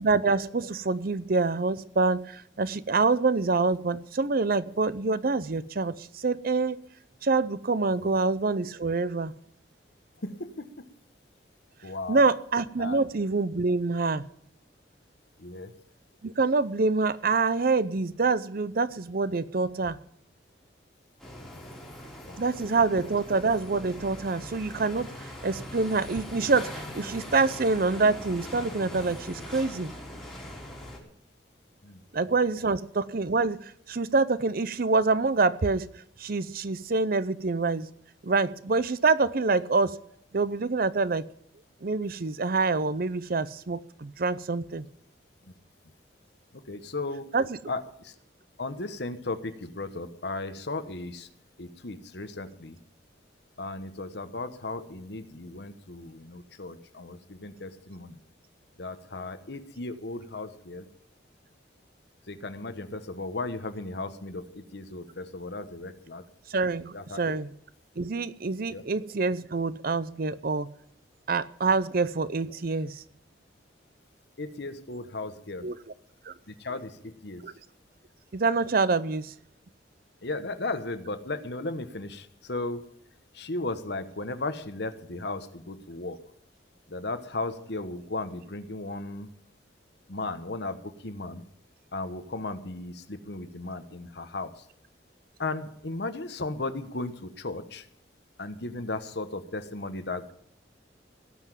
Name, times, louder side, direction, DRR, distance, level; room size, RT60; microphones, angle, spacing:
voice 1, 0.0-6.8 7.2-9.3 12.1-14.3 16.2-20.0 22.4-25.1 25.4-29.9 32.1-35.9 36.2-37.9 38.2-40.0 40.3-41.3 41.8-44.8 47.3-47.5 66.5-67.5 68.0-70.7 71.3-73.0 75.6-75.7 76.3-76.4 77.4-77.5 78.3-79.3, right 3 dB, 50° right, 0.6 m, -26 dB
voice 2, 10.2-10.9 11.8-12.3 12.8-13.0 15.4-15.7 21.4-23.1 31.8-32.0 32.3-32.4 46.5-47.3 47.7-48.1 48.6-51.3 51.6-52.8 53.6-58.2 58.8-60.9 62.3-66.2 66.9-67.4 68.7-68.8 74.4-75.7 76.5-77.4 80.2-82.9 83.3-86.2 86.9-89.3 90.1-91.4 91.9-94.6 95.4-97.9 98.4-100.3, left 2 dB, 60° left, 1.2 m, -36 dB
sound 1, 21.2-31.0, left 1 dB, 5° left, 3.9 m, -41 dB
18.0 x 6.1 x 9.0 m
head